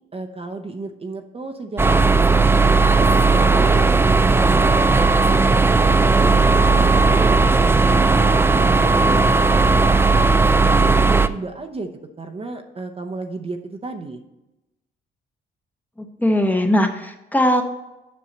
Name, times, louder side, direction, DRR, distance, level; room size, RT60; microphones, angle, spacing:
voice 1, 0.1-2.5 2.9-4.8 5.2-10.0 10.6-11.9 12.2-14.2, right 3 dB, 30° right, 5 dB, 0.8 m, -32 dB
sound 1, 1.8-11.3, right 3 dB, 10° right, 0.3 m, -16 dB
voice 2, 16.0-17.6, left 1 dB, 10° left, 5 dB, 0.9 m, -19 dB
7.6 x 5.5 x 5.3 m, 0.96 s
cardioid pair, 90°, 20 cm